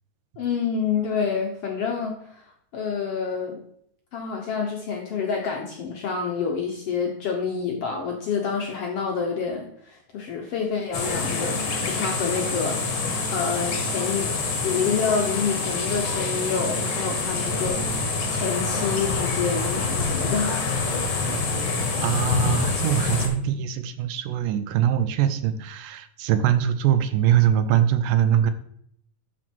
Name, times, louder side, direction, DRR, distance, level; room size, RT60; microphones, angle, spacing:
voice 1, 0.4-2.4 2.7-3.6 4.1-14.3 14.6-20.8 21.1-21.8, left 6 dB, 65° left, 1 dB, 1.5 m, -28 dB
sound 1, 10.9-23.3, left 3 dB, 50° left, 1.5 m, -26 dB
voice 2, 22.0-28.5, right 10 dB, 80° right, 11 dB, 2.2 m, -22 dB
11.5 x 4.5 x 4.5 m, 0.68 s
omnidirectional pair, 3.9 m